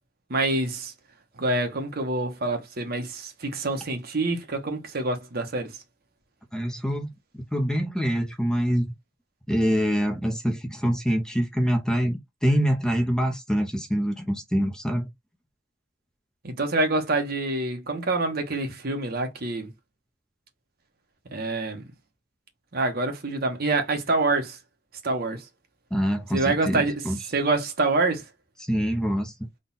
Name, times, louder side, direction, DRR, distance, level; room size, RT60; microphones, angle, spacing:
voice 1, 0.3-0.9 1.4-5.7 16.4-19.7 21.3-21.8 22.7-24.6 25.0-25.4 26.3-27.0 27.3-28.2, right 2 dB, 55° right, 1.0 m, -26 dB
voice 2, 6.5-8.9 9.5-15.1 25.9-27.2 28.6-29.3, equal, 5° left, 0.7 m, -25 dB
3.8 x 2.4 x 3.9 m
head